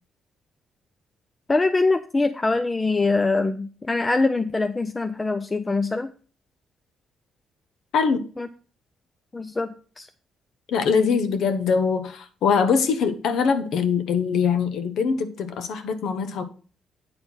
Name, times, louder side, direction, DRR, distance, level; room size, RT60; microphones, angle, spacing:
voice 1, 1.5-6.1 8.4-8.5 9.3-10.1, left 3 dB, 20° left, 0.5 m, -23 dB
voice 2, 7.9-8.3 10.7-16.4, left 6 dB, 75° left, 1.0 m, -22 dB
9.0 x 4.2 x 5.5 m
cardioid pair, 90°, 0 cm